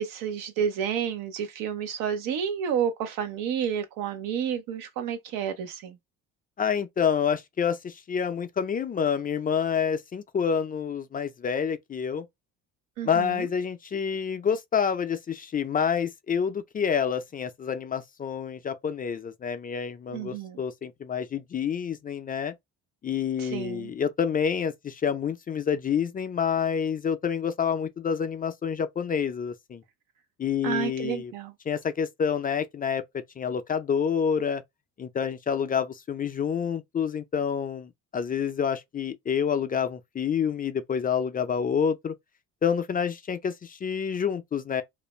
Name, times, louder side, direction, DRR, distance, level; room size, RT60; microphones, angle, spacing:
voice 1, 0.0-6.0 13.0-13.5 20.1-20.6 23.4-23.9 30.6-31.5, right 8 dB, 80° right, 0.8 m, -30 dB
voice 2, 6.6-12.3 13.0-22.5 23.0-29.8 30.4-31.3 31.7-34.6 35.0-42.1 42.6-44.8, left 7 dB, 25° left, 0.4 m, -28 dB
2.5 x 2.1 x 3.1 m
cardioid pair, 95°, 33 cm